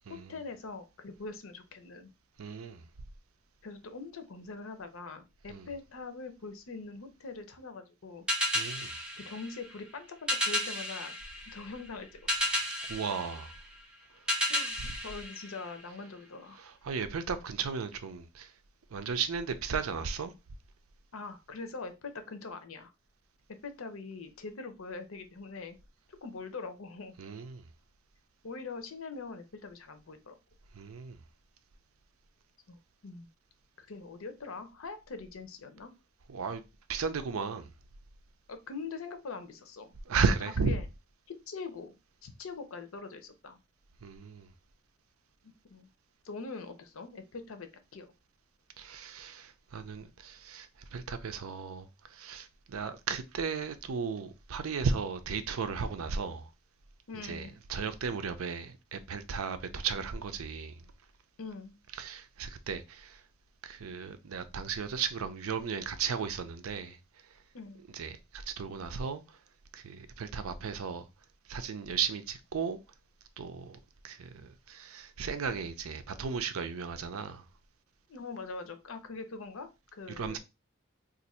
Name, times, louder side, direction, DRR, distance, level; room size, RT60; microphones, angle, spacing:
voice 1, 0.1-2.1 3.6-8.2 9.2-11.2 11.5-12.6 14.5-16.6 21.1-22.9 23.6-25.8 26.2-27.1 28.4-30.4 32.7-33.3 33.8-35.9 38.5-39.9 40.6-40.9 41.3-41.9 42.2-43.6 45.7-45.9 46.2-48.1 57.1-57.5 61.4-61.8 67.5-67.8 78.1-80.4, left 4 dB, 80° left, 0.6 m, -43 dB
voice 2, 2.4-2.8 5.5-5.7 8.5-8.9 12.9-13.5 16.6-18.5 18.9-20.3 27.2-27.6 30.8-31.2 36.3-36.6 36.9-37.7 40.1-40.8 44.0-44.5 48.8-56.5 57.2-60.8 62.0-63.2 63.6-67.0 67.9-69.2 69.7-71.0 71.5-72.8 73.4-73.8 74.0-77.4 80.1-80.4, right 5 dB, 90° right, 0.5 m, -35 dB
sound 1, 8.3-16.1, equal, 5° right, 0.5 m, -34 dB
2.6 x 2.5 x 4.2 m
head